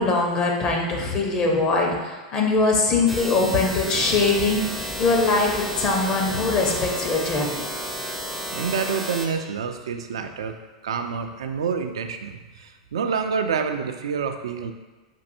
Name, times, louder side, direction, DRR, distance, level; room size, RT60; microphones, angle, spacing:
voice 1, 0.0-7.6, left 3 dB, 35° left, 0 dB, 0.7 m, -22 dB
sound 1, 3.1-9.3, equal, 5° right, 0.5 m, -32 dB
voice 2, 8.5-10.6 10.8-14.7, right 6 dB, 70° right, 6 dB, 0.3 m, -28 dB
5.2 x 2.6 x 2.6 m, 1.2 s
figure-of-eight pair, 90°, 3 cm